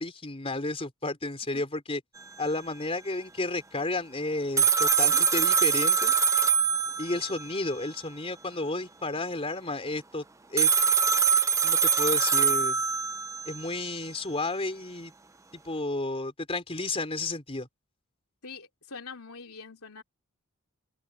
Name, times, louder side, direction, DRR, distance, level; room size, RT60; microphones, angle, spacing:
voice 1, 0.0-2.0 2.4-6.1 7.0-10.2 10.5-10.7 11.6-12.8 13.5-15.1 15.6-17.7, left 2 dB, 25° left, 3.9 m, -32 dB
sound 1, 4.6-7.4 10.6-13.6, right 6 dB, 15° right, 0.5 m, -23 dB
voice 2, 18.4-20.0, left 4 dB, 80° left, 2.9 m, -44 dB
open air
head